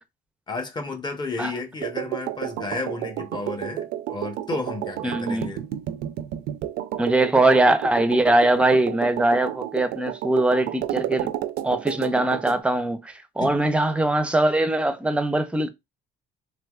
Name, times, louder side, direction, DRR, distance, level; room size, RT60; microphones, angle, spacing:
voice 1, 0.5-5.6 13.4-13.6, left 3 dB, 25° left, 0.7 m, -32 dB
sound 1, 1.8-12.6, right 12 dB, 85° right, 0.4 m, -31 dB
voice 2, 5.0-5.5 7.0-11.3 11.6-15.7, right 2 dB, 5° right, 0.4 m, -21 dB
3.2 x 3.0 x 2.3 m
cardioid pair, 110°, 17 cm